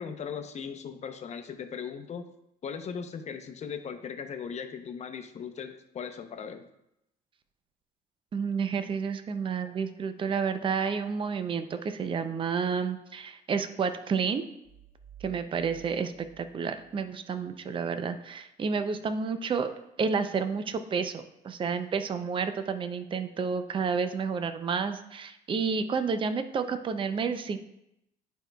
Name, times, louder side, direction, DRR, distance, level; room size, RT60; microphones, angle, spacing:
voice 1, 0.0-2.3 2.6-6.6, left 7 dB, 40° left, 7 dB, 0.7 m, -38 dB
voice 2, 8.3-14.4 15.2-19.7 20.0-27.6, right 5 dB, 30° right, 9 dB, 0.5 m, -30 dB
sound 1, 14.6-17.6, right 11 dB, 10° left, 1.3 m, -54 dB
11.0 x 4.6 x 2.3 m, 0.81 s
cardioid pair, 110°, 17 cm